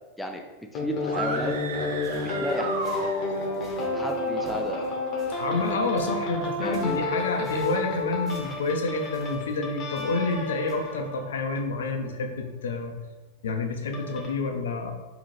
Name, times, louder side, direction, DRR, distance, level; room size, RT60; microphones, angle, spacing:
sound 1, 0.7-12.1 13.9-14.3, left 2 dB, 35° left, 0.8 m, -31 dB
voice 1, 0.7-1.5 2.2-2.7 4.0-4.9 6.6-7.0, equal, 5° left, 2 dB, 0.3 m, -33 dB
sound 2, 1.0-3.6, right 4 dB, 60° right, 0.4 m, -34 dB
sound 3, 2.0-10.4 10.7-10.9, right 1 dB, 15° right, 0.9 m, -50 dB
voice 2, 5.3-13.0 13.4-14.9, left 3 dB, 65° left, 4 dB, 0.5 m, -29 dB
3.8 x 2.8 x 3.1 m, 1.2 s
figure-of-eight pair, 90°, 0 cm